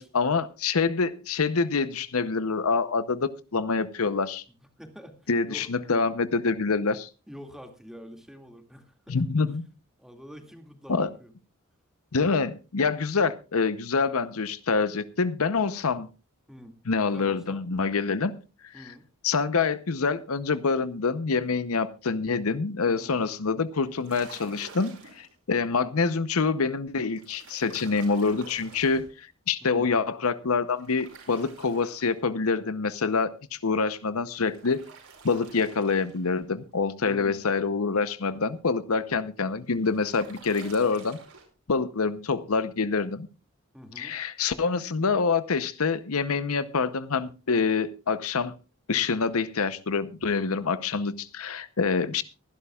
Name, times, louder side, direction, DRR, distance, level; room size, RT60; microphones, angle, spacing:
voice 1, 0.0-4.4 5.3-7.1 9.1-9.7 10.9-11.1 12.1-16.1 16.9-18.3 19.2-34.9 35.2-41.2 41.7-43.3 44.0-48.5 48.9-52.2, left 4 dB, 75° left, 14 dB, 0.8 m, -26 dB
voice 2, 4.8-5.7 7.3-9.3 10.0-11.3 16.5-16.8 17.1-17.6 18.7-19.1 23.0-23.3 29.6-29.9 37.0-37.4 43.7-44.2, equal, ahead, 5 dB, 2.2 m, -46 dB
sound 1, 23.8-25.3 27.2-29.1 30.8-32.5 34.3-36.5 39.4-41.4, right 5 dB, 75° right, 5.4 m, -49 dB
23.5 x 11.0 x 2.4 m, 0.32 s
head